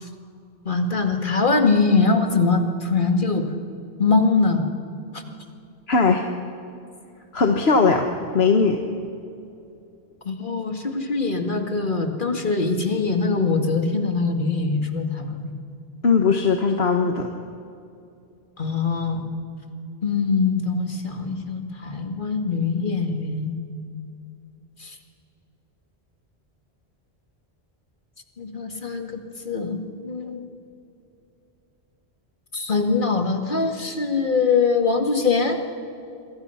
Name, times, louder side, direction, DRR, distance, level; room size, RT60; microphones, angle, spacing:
voice 1, 0.6-3.5 4.0-4.6 5.1-5.2 10.2-15.5 18.6-19.3 20.0-23.6 24.8-25.0 28.4-30.5 32.5-35.6, left 4 dB, 50° left, 4 dB, 2.2 m, -23 dB
voice 2, 5.9-6.3 7.3-8.8 16.0-17.3, left 4 dB, 70° left, 4 dB, 1.6 m, -19 dB
27.5 x 23.5 x 5.8 m, 2.6 s
omnidirectional pair, 1.1 m